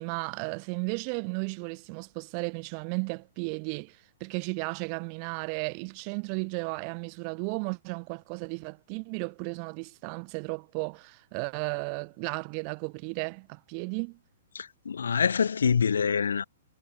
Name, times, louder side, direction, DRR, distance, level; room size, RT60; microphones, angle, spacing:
voice 1, 0.0-14.2, right 40 dB or more, 35° right, 0.9 m, -34 dB
voice 2, 14.5-16.4, left 6 dB, 65° left, 1.6 m, -25 dB
figure-of-eight pair, 115°, 0 cm